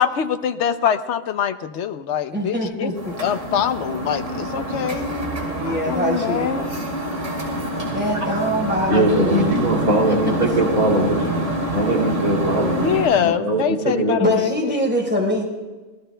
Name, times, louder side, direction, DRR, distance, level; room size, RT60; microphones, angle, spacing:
voice 1, 0.0-2.9 3.2-5.1 5.6-6.7 11.4-11.5 12.8-14.5, left 8 dB, 60° left, 10 dB, 0.9 m, -23 dB
voice 2, 2.3-3.2 5.5-6.5 7.9-9.6 10.1-10.2 14.2-15.4, equal, 5° right, -2 dB, 4.1 m, -23 dB
sound 1, 3.0-13.2, right 1 dB, 55° right, 3.4 m, -27 dB
voice 3, 8.9-11.4 11.7-14.2, right 1 dB, 80° right, -2 dB, 3.5 m, -21 dB
26.5 x 19.5 x 2.2 m, 1.3 s
omnidirectional pair, 1.5 m